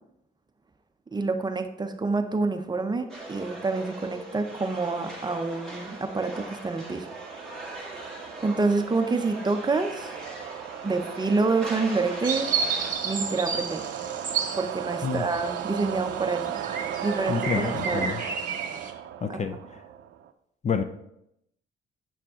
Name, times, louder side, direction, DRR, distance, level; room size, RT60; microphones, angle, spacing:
voice 1, 1.1-7.1 8.4-10.2 10.8-12.5 13.0-13.8 14.6-16.6 17.0-18.2 19.3-19.6, right 3 dB, 20° right, 7 dB, 0.7 m, -27 dB
sound 1, 3.1-12.9, right 1 dB, 5° left, 2.0 m, -40 dB
sound 2, 3.8-20.3, right 10 dB, 70° right, 0.5 m, -37 dB
sound 3, 12.2-18.9, right 6 dB, 40° right, 1.4 m, -32 dB
voice 2, 17.3-18.2 19.2-19.6 20.6-20.8, left 6 dB, 35° left, 9 dB, 0.5 m, -28 dB
7.1 x 5.7 x 3.7 m, 0.80 s
cardioid pair, 90°, 20 cm